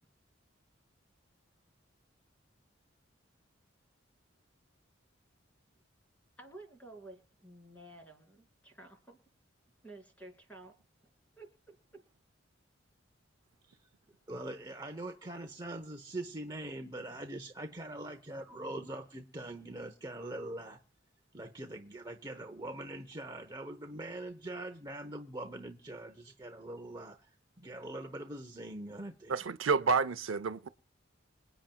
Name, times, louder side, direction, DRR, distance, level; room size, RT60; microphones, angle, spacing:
voice 1, 6.4-9.2 9.8-10.7 11.3-12.1, right 2 dB, 10° left, 2.7 m, -52 dB
voice 2, 14.3-20.8 21.3-29.5, right 1 dB, 20° right, 0.8 m, -43 dB
voice 3, 29.3-30.7, right 5 dB, 85° right, 0.6 m, -29 dB
26.5 x 9.0 x 2.3 m
head